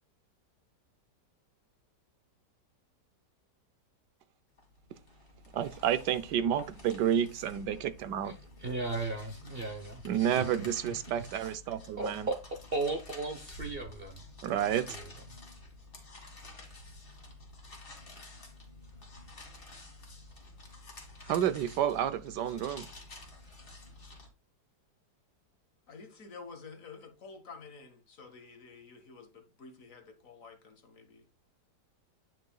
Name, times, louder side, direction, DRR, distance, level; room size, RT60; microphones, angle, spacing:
sound 1, 4.6-24.3, left 2 dB, 30° left, 2.1 m, -50 dB
voice 1, 5.5-8.4 10.0-12.3 14.4-15.0 21.3-22.9, right 10 dB, 75° right, 1.3 m, -30 dB
voice 2, 8.2-11.3 12.0-14.2 14.5-15.1, right 3 dB, 40° right, 0.9 m, -37 dB
voice 3, 25.9-31.4, left 4 dB, 50° left, 1.7 m, -50 dB
9.3 x 6.1 x 2.3 m
omnidirectional pair, 1.9 m